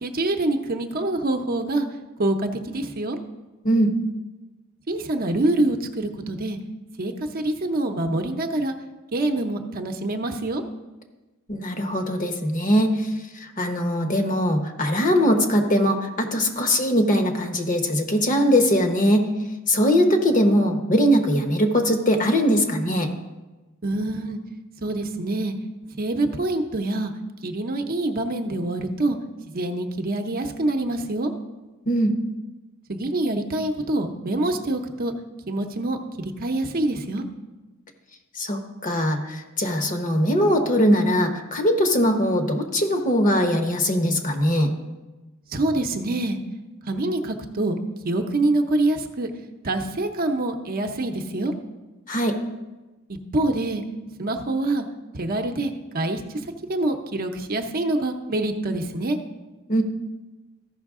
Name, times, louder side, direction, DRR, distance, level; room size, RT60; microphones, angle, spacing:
voice 1, 0.0-1.9 2.2-3.2 4.9-6.6 7.0-8.7 9.1-10.6 23.8-24.4 24.8-25.5 26.0-27.1 27.4-29.2 29.5-31.3 32.9-35.1 35.5-37.2 45.5-46.4 46.9-47.8 48.0-49.3 49.6-51.5 53.3-53.8 54.2-54.8 55.1-59.2, right 2 dB, 45° right, 5 dB, 0.7 m, -25 dB
voice 2, 11.5-12.9 13.6-19.3 19.7-23.1 31.9-32.2 38.4-44.7 52.1-52.4 59.7-59.8, equal, 40° left, 4 dB, 1.0 m, -21 dB
14.0 x 5.7 x 3.6 m, 1.1 s
head